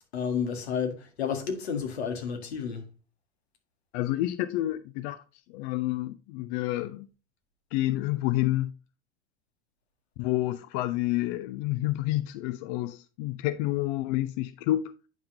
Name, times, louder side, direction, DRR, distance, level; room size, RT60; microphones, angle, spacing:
voice 1, 0.1-2.8, left 7 dB, 70° left, 1.8 m, -31 dB
voice 2, 3.9-5.2 5.5-7.1 7.7-8.7 10.2-14.9, left 16 dB, 40° left, 0.5 m, -29 dB
9.2 x 5.7 x 2.7 m
figure-of-eight pair, 80°, 33 cm